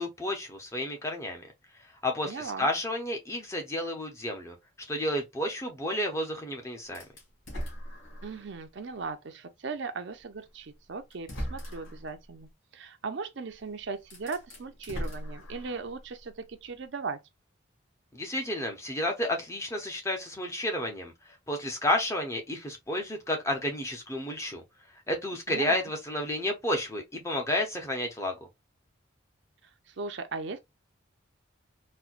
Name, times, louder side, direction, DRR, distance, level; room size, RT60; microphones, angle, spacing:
voice 1, 0.0-1.4 2.0-4.6 4.9-7.0 18.1-21.1 21.5-24.6 25.1-28.4, left 1 dB, 15° left, 0.7 m, -31 dB
voice 2, 2.2-2.7 8.2-17.2 25.5-25.8 29.9-30.6, right 4 dB, 60° right, 0.5 m, -38 dB
sound 1, 6.9-8.6 9.1-9.2 10.4-10.5 11.1-12.1 13.5-13.6 14.0-16.0, equal, 75° left, 2.2 m, -39 dB
4.2 x 2.1 x 2.4 m
head